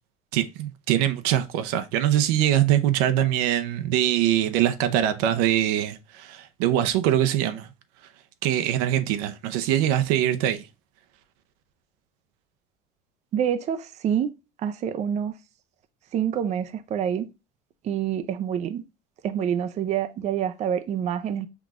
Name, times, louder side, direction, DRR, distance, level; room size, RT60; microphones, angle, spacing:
voice 1, 0.3-7.7 8.0-8.1 8.4-10.7, right 11 dB, 90° right, 0.7 m, -23 dB
voice 2, 13.3-14.3 14.6-15.3 16.1-17.3 17.8-18.8 19.2-21.5, right 9 dB, 35° right, 0.5 m, -27 dB
5.9 x 3.0 x 2.4 m
cardioid pair, 140°, 21 cm